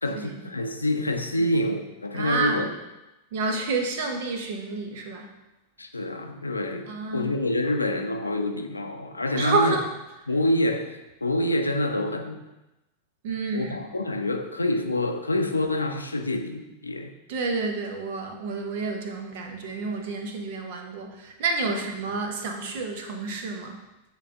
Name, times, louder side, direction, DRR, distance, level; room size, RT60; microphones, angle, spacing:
voice 1, 0.0-2.7 5.8-9.8 10.3-12.4 13.5-17.1 21.7-21.8, left 1 dB, 80° left, 5 dB, 0.5 m, -27 dB
voice 2, 2.1-2.7 3.3-5.3 6.9-7.4 9.3-9.8 13.2-13.8 17.3-23.8, right 3 dB, 50° right, 3 dB, 0.9 m, -29 dB
8.8 x 3.2 x 3.7 m, 0.99 s
figure-of-eight pair, 90°, 0 cm